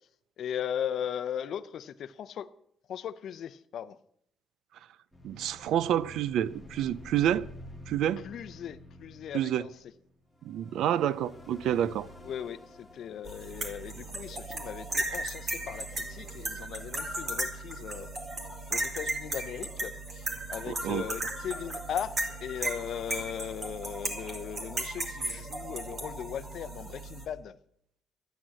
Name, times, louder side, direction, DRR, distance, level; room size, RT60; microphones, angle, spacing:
voice 1, 0.4-2.5 2.9-4.0 8.2-9.7 12.2-18.1 18.7-22.1 22.4-27.6, left 9 dB, 55° left, 0.6 m, -38 dB
sound 1, 5.1-14.7 15.3-17.4, left 1 dB, ahead, 1.6 m, -50 dB
voice 2, 5.2-7.5 7.9-8.2 9.3-9.6 10.4-12.1 20.7-21.0, right 10 dB, 75° right, 0.5 m, -28 dB
sound 2, 13.2-27.3, right 2 dB, 30° right, 2.1 m, -36 dB
12.5 x 9.0 x 7.5 m
cardioid pair, 180°, 0 cm